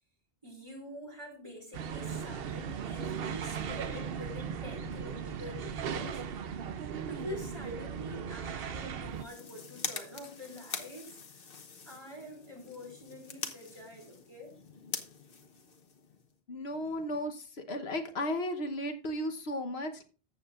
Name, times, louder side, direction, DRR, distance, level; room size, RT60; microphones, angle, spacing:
voice 1, 0.4-6.2 7.1-11.1 11.8-14.5, left 1 dB, 30° right, 4.0 m, -46 dB
sound 1, 1.7-9.2, right 7 dB, 70° right, 0.9 m, -37 dB
sound 2, 9.1-16.3, left 5 dB, 65° left, 1.3 m, -44 dB
voice 2, 16.5-17.4 17.7-20.0, left 1 dB, 85° left, 1.4 m, -34 dB
14.0 x 7.8 x 2.5 m
omnidirectional pair, 1.0 m